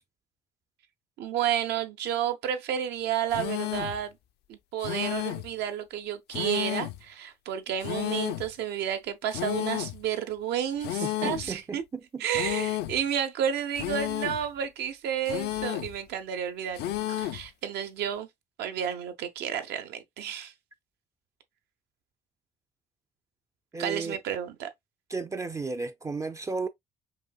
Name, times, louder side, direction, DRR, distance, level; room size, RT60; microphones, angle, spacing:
voice 1, 1.2-4.2 4.5-11.8 12.2-18.3 18.6-20.5 23.8-24.7, right 9 dB, 80° right, 0.8 m, -31 dB
sound 1, 3.3-4.0 4.8-5.5 6.3-7.0 7.8-8.5 9.3-10.0 10.8-11.5 12.3-13.0 13.8-14.5 15.3-16.0 16.8-17.5, left 15 dB, 75° left, 0.5 m, -32 dB
voice 2, 11.0-12.2 23.7-24.2 25.1-26.7, right 4 dB, 20° right, 0.4 m, -34 dB
5.3 x 2.7 x 2.2 m
cardioid pair, 110°, 17 cm